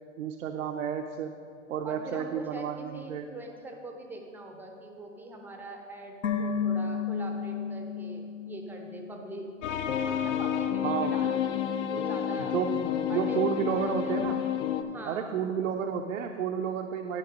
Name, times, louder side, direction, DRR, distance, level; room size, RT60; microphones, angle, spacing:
voice 1, 0.2-1.4 1.7-3.3 10.8-11.2 12.4-14.4 15.1-17.2, right 8 dB, 80° right, 5 dB, 0.6 m, -31 dB
voice 2, 1.8-9.5 10.0-12.6 13.1-14.2 14.8-15.4, right 2 dB, 5° right, 2 dB, 0.5 m, -43 dB
sound 1, 6.2-9.5 9.8-9.9, left 6 dB, 90° left, 1.1 m, -32 dB
sound 2, 9.6-14.8, left 9 dB, 70° left, 0.7 m, -30 dB
11.0 x 4.3 x 5.1 m, 2.4 s
hypercardioid pair, 135°, 38 cm